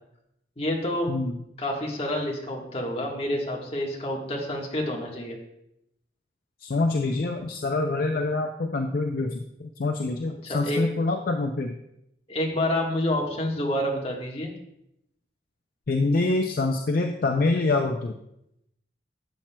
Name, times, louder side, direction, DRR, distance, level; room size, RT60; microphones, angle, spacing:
voice 1, 0.6-1.1 1.6-5.4 10.5-10.8 12.3-14.5, left 1 dB, 35° left, -1 dB, 1.4 m, -28 dB
voice 2, 1.1-1.4 6.6-11.8 15.9-18.1, left 3 dB, 55° left, 4 dB, 0.5 m, -25 dB
11.5 x 7.4 x 2.2 m, 0.81 s
head